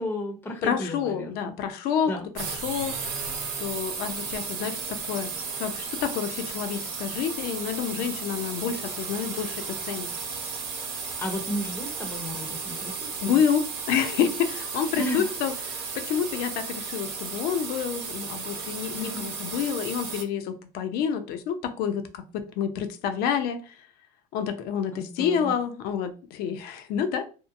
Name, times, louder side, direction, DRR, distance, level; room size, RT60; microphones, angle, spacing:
voice 1, 0.0-1.5 2.1-2.3 11.2-13.4 15.0-15.3 19.0-19.3 24.9-25.5, left 1 dB, 10° left, 0.6 m, -33 dB
voice 2, 0.6-3.0 3.6-5.3 5.6-10.1 13.2-22.2 22.6-23.8 24.3-27.3, left 8 dB, 65° left, 0.6 m, -28 dB
sound 1, 2.4-20.2, right 5 dB, 70° right, 0.9 m, -34 dB
2.7 x 2.1 x 2.5 m
supercardioid pair, 120°, 17 cm